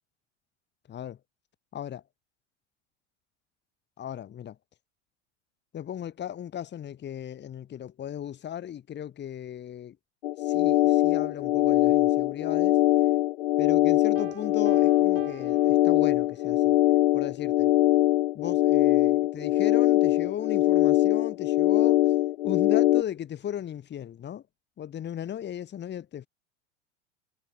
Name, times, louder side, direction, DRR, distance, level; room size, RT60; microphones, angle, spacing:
voice 1, 0.9-1.2 1.7-2.0 4.0-4.6 5.7-10.0 10.4-12.8 13.6-16.8 17.1-17.7 18.3-22.1 22.4-24.4 24.8-26.3, left 10 dB, 30° left, 4.1 m, -36 dB
sound 1, 10.2-23.0, left 15 dB, 60° left, 0.8 m, -22 dB
Piano, 14.2-16.5, right 21 dB, 55° right, 4.7 m, -47 dB
figure-of-eight pair, 85°, 37 cm